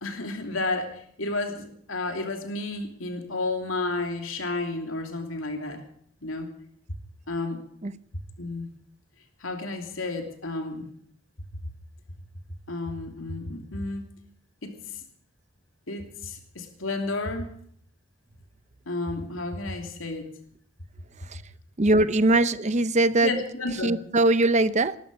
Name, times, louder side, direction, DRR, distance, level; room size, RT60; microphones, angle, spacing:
voice 1, 0.0-5.8 6.2-6.5 7.3-7.6 8.4-8.7 9.4-10.9 12.7-14.1 14.6-15.0 15.9-17.5 18.9-20.3 23.2-24.0, left 2 dB, 85° left, 2.8 m, -31 dB
voice 2, 21.8-23.3 23.8-25.0, right 2 dB, 35° right, 0.7 m, -21 dB
19.5 x 14.0 x 5.3 m
head